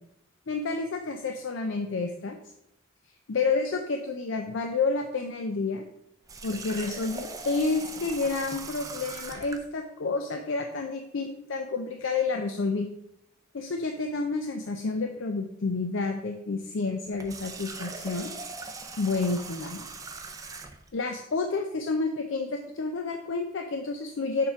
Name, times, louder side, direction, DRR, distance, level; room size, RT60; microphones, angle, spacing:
voice 1, 0.5-2.4 3.3-5.8 6.4-12.9 13.5-18.3 19.0-19.9 20.9-24.5, left 3 dB, 70° left, 5 dB, 0.5 m, -30 dB
Water tap faucet, 6.3-9.7 17.1-20.9, right 4 dB, 15° right, 0.5 m, -40 dB
6.6 x 3.6 x 5.7 m, 0.77 s
head